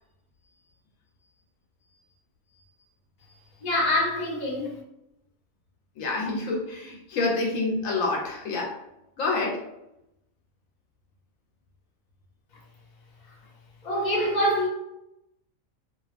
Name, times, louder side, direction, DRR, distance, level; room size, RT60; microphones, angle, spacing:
voice 1, 3.6-4.8 13.3-13.4 13.8-14.7, left 1 dB, 40° left, 0.7 m, -25 dB
voice 2, 6.0-8.8 9.2-9.6, left 3 dB, 80° left, 1.0 m, -27 dB
2.4 x 2.3 x 2.4 m
omnidirectional pair, 1.4 m